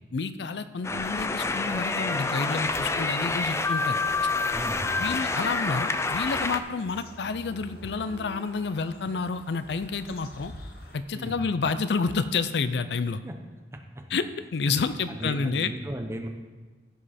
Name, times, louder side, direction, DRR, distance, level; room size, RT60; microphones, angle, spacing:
voice 1, 0.1-4.0 5.0-10.5 10.9-13.2 14.1-15.7, left 4 dB, 75° left, 12 dB, 0.5 m, -29 dB
sound 1, 0.8-6.6, left 3 dB, 15° left, 0.4 m, -28 dB
Andes NY Hike, 2.6-11.0, left 1 dB, 55° left, 1.1 m, -47 dB
voice 2, 4.5-5.1 11.1-11.4 13.2-13.3 13.7-14.1 15.1-16.3, right 1 dB, 15° right, 4 dB, 0.9 m, -36 dB
15.5 x 5.2 x 4.3 m, 1.4 s
head